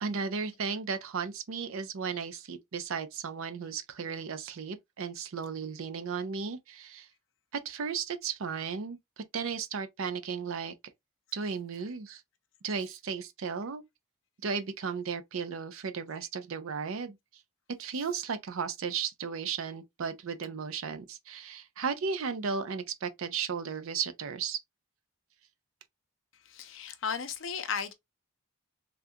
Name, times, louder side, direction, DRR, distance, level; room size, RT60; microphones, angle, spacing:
voice 1, 0.0-7.1 7.5-10.7 11.3-12.2 12.6-13.8 14.4-17.2 17.8-24.6, right 6 dB, 65° right, 0.5 m, -35 dB
voice 2, 26.5-27.9, left 6 dB, 60° left, 0.6 m, -35 dB
3.6 x 2.3 x 2.7 m
head